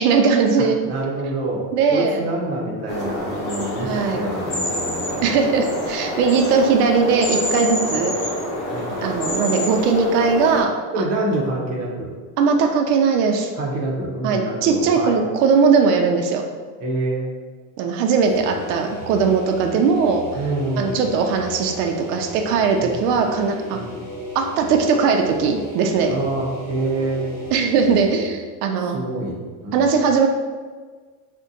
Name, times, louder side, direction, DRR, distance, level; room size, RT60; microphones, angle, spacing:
voice 1, 0.0-0.8 1.7-2.2 3.8-4.2 5.2-8.1 9.0-11.1 12.4-13.5 14.2-16.4 17.8-20.2 20.8-23.8 24.3-26.1 27.5-29.0 29.7-30.3, right 5 dB, 85° right, 4 dB, 0.5 m, -19 dB
voice 2, 0.6-1.6 1.9-5.5 8.7-9.0 10.9-12.1 13.5-15.2 16.8-17.3 18.9-19.0 20.3-21.1 22.8-23.0 23.7-23.9 26.1-27.4 28.9-29.9, right 2 dB, 35° right, -3 dB, 0.6 m, -27 dB
sound 1, 2.9-10.6, left 1 dB, 30° left, 0.7 m, -27 dB
sound 2, 18.0-28.4, equal, 5° left, 1.2 m, -35 dB
2.6 x 2.2 x 3.7 m, 1.5 s
cardioid pair, 165°, 46 cm